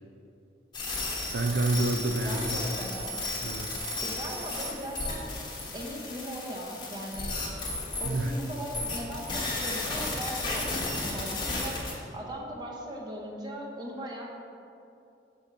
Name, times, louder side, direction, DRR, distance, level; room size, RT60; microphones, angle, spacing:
sound 1, 0.7-11.9, left 2 dB, 25° left, 1.0 m, -34 dB
voice 1, 1.3-2.6 3.4-3.8 8.0-8.3, right 2 dB, 70° right, 4 dB, 0.4 m, -28 dB
voice 2, 2.2-3.2 4.0-5.3 5.7-7.4 8.0-11.8 12.1-14.3, equal, 25° right, -1 dB, 0.7 m, -38 dB
6.7 x 3.4 x 5.0 m, 2.7 s
head